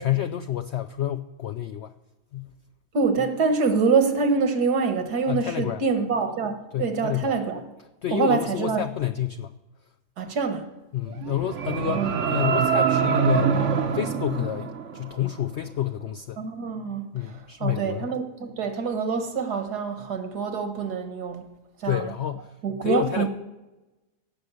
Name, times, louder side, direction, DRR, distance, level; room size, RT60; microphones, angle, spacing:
voice 1, 0.0-1.9 2.3-2.5 5.3-5.8 6.7-7.4 8.0-9.5 10.9-16.4 17.1-18.1 21.8-22.5 22.8-23.3, left 11 dB, 75° left, 0.6 m, -29 dB
voice 2, 2.9-7.6 8.1-8.8 10.2-10.7 11.9-12.1 16.4-21.4 21.8-22.1 22.6-23.3, right 5 dB, 75° right, 1.9 m, -25 dB
sound 1, 11.1-15.3, right 7 dB, 55° right, 1.1 m, -24 dB
16.5 x 6.4 x 8.2 m
omnidirectional pair, 1.7 m